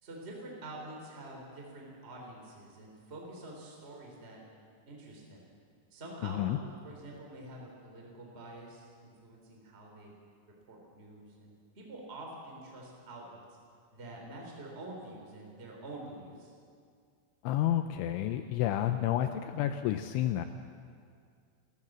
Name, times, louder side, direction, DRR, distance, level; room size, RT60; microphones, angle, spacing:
voice 1, 0.0-4.4 4.8-5.4 5.9-10.1 10.7-13.4 13.9-16.5, right 2 dB, 15° right, -1 dB, 3.2 m, -47 dB
voice 2, 6.2-6.6 17.4-20.5, left 12 dB, 80° left, 8 dB, 2.8 m, -30 dB
30.0 x 13.5 x 7.5 m, 2.2 s
omnidirectional pair, 6.0 m